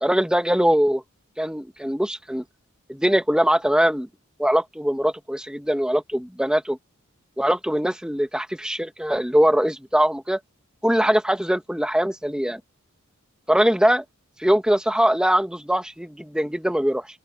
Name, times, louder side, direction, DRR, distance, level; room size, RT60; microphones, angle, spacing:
voice 1, 0.0-1.0 1.4-2.4 2.9-4.1 4.4-6.8 7.4-10.4 10.8-12.6 13.5-14.0 14.4-17.1, equal, 5° right, 1.3 m, -22 dB
open air
head